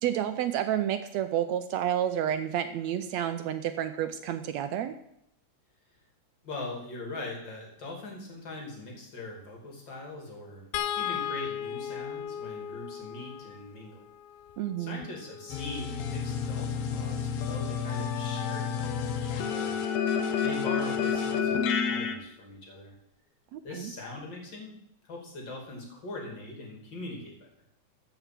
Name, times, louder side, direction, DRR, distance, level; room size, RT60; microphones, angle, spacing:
voice 1, 0.0-4.9 14.6-15.0 23.5-23.9, right 10 dB, 75° right, 9 dB, 1.7 m, -30 dB
voice 2, 6.4-10.7 10.9-14.1 14.8-20.1 20.4-22.9 23.6-27.5, left 2 dB, 35° left, 0 dB, 3.1 m, -41 dB
sound 1, 10.7-17.1 18.6-18.8 19.1-19.3, left 10 dB, 90° left, 1.4 m, -38 dB
sound 2, 15.5-22.1, left 6 dB, 65° left, 1.9 m, -30 dB
14.0 x 5.6 x 7.5 m, 0.75 s
omnidirectional pair, 3.6 m